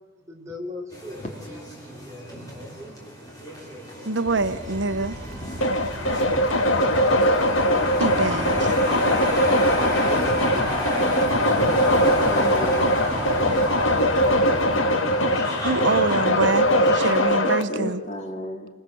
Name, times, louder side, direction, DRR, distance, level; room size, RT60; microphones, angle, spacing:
voice 1, 0.2-2.3 9.6-10.8 17.8-17.9, left 1 dB, 15° right, -1 dB, 5.1 m, -40 dB
sound 1, 0.9-17.1, equal, 20° left, 7.1 m, -30 dB
voice 2, 4.0-5.1 7.3-7.6 8.0-8.7 12.0-12.1 12.6-12.7 15.6-18.0, right 3 dB, 65° right, 9 dB, 1.0 m, -26 dB
sound 2, 4.2-14.8, equal, 45° right, 5.0 m, -38 dB
voice 3, 5.4-5.9 12.0-12.9 17.4-18.7, equal, 35° left, 3 dB, 3.4 m, -34 dB
sound 3, 5.6-17.6, equal, 85° left, 1.8 m, -21 dB
29.0 x 26.0 x 7.9 m, 1.2 s
head